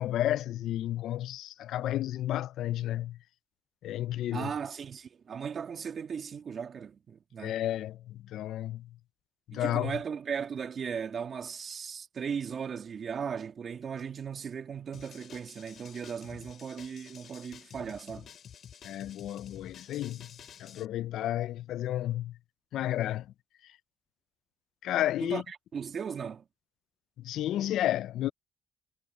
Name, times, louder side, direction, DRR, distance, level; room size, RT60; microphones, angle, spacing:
voice 1, 0.0-3.2 3.8-4.5 7.4-8.9 9.5-9.9 18.8-20.3 20.6-22.4 22.7-23.3 24.8-25.4 27.2-28.3, left 13 dB, 80° left, 0.4 m, -32 dB
voice 2, 4.3-7.6 9.5-18.3 25.2-26.4, right 7 dB, 50° right, 2.2 m, -37 dB
sound 1, 14.9-20.8, left 8 dB, 60° left, 4.2 m, -50 dB
cardioid pair, 90°, 0 cm